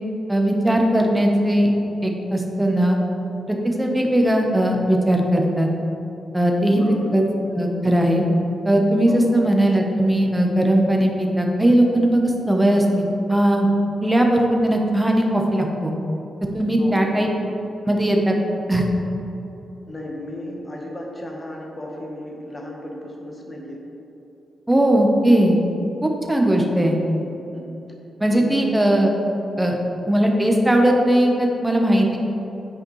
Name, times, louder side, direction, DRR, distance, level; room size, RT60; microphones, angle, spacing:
voice 1, 0.3-1.7 2.0-3.0 3.5-5.7 6.3-6.8 7.1-7.2 7.5-8.2 8.6-12.8 13.3-13.7 14.0-15.9 16.5-17.3 17.9-18.4 18.7-18.9 24.7-25.6 26.0-27.0 28.2-29.1 29.6-29.8 30.1-32.1, right 1 dB, 10° right, 1 dB, 0.9 m, -18 dB
voice 2, 4.0-4.3 6.7-7.2 9.1-9.3 16.8-17.1 19.9-23.8 27.5-27.7 28.3-28.6 30.0-30.1, left 1 dB, 25° left, -1 dB, 1.2 m, -34 dB
8.8 x 4.9 x 3.2 m, 3.0 s
cardioid pair, 100°, 0 cm